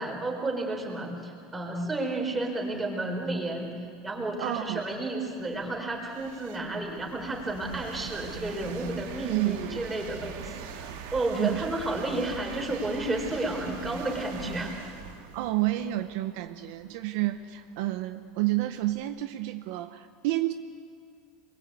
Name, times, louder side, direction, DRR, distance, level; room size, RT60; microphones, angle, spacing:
voice 1, 0.0-3.7 4.0-14.7, right 2 dB, 10° right, 1 dB, 4.5 m, -32 dB
sound 1, 3.7-3.8 4.4-19.2, right 7 dB, 80° right, 2.9 m, -44 dB
voice 2, 4.4-4.9 9.2-9.8 11.4-11.6 15.3-20.5, right 16 dB, 60° right, 9 dB, 0.9 m, -30 dB
26.5 x 22.5 x 8.5 m, 2.2 s
supercardioid pair, 160°, 0 cm